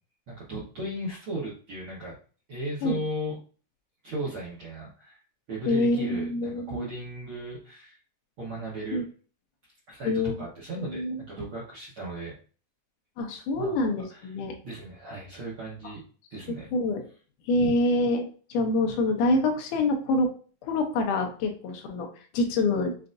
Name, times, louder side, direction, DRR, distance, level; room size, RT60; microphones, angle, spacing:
voice 1, 0.3-2.2 2.5-3.4 4.0-5.2 5.5-8.0 8.4-9.0 9.9-10.1 10.4-12.3 13.6-13.8 14.1-14.3 14.6-16.0 16.3-16.7 17.5-17.8, right 1 dB, 75° right, -6 dB, 1.2 m, -36 dB
voice 2, 5.7-6.9 8.9-9.0 10.0-10.4 10.8-11.2 13.2-14.6 16.5-17.1 17.5-20.3 20.6-22.1 22.3-22.9, left 2 dB, 75° left, 3 dB, 2.1 m, -26 dB
6.6 x 2.5 x 2.5 m, 0.39 s
omnidirectional pair, 4.0 m